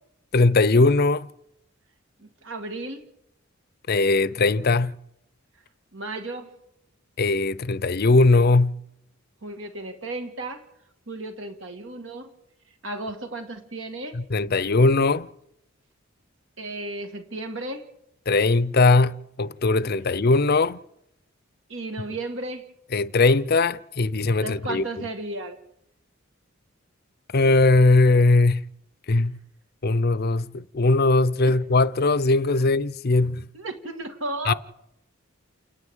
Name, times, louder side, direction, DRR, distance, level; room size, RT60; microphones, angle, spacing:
voice 1, 0.3-1.3 3.9-5.0 7.2-8.8 14.1-15.3 18.3-20.8 22.9-25.0 27.3-28.7 29.1-29.4 29.8-33.4 34.5-34.6, left 3 dB, 50° left, 0.7 m, -20 dB
voice 2, 2.2-3.0 5.9-6.5 9.4-10.6 11.1-12.3 12.8-14.2 16.6-17.8 21.7-22.6 24.4-25.6 33.5-34.5, right 2 dB, 65° right, 2.3 m, -34 dB
29.0 x 9.8 x 9.2 m
head